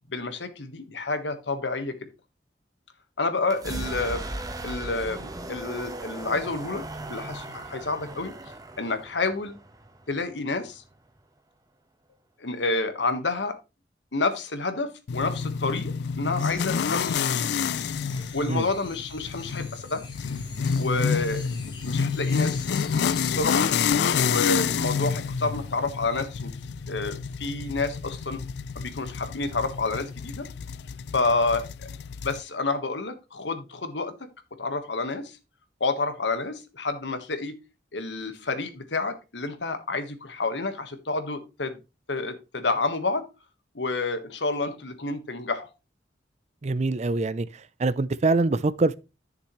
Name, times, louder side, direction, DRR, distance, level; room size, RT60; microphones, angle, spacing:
voice 1, 0.1-1.9 3.2-4.2 4.6-5.2 5.5-6.8 7.1-8.3 8.8-9.6 10.1-10.8 12.4-13.6 14.1-17.5 18.3-20.0 20.7-23.7 24.1-26.5 26.9-28.4 28.7-30.5 31.1-31.9 32.2-34.1 34.6-35.4 35.8-37.6 37.9-41.8 42.1-43.2 43.7-45.7, left 3 dB, 85° left, 1.4 m, -29 dB
sound 1, 3.4-11.2, right 2 dB, 20° right, 1.1 m, -38 dB
sound 2, 15.1-32.4, left 6 dB, 65° left, 0.4 m, -28 dB
sound 3, 16.4-24.0, left 4 dB, 25° left, 1.6 m, -46 dB
voice 2, 46.6-47.5 47.8-48.9, right 3 dB, 40° right, 0.5 m, -24 dB
11.5 x 6.7 x 3.1 m
head